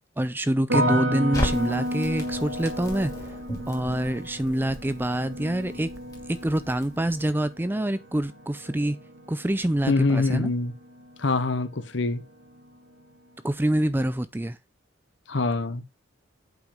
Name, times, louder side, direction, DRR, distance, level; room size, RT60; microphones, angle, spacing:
voice 1, 0.2-3.1 3.7-5.9 6.3-9.0 9.3-10.5 13.4-14.6, right 1 dB, 10° right, 0.4 m, -26 dB
sound 1, 0.7-11.8 12.0-12.8, equal, 75° right, 1.8 m, -33 dB
Crackle, 1.3-7.5, left 1 dB, 15° left, 2.2 m, -36 dB
voice 2, 9.8-10.7 11.2-12.2 15.3-15.8, left 3 dB, 60° left, 0.8 m, -24 dB
8.1 x 5.1 x 5.1 m
head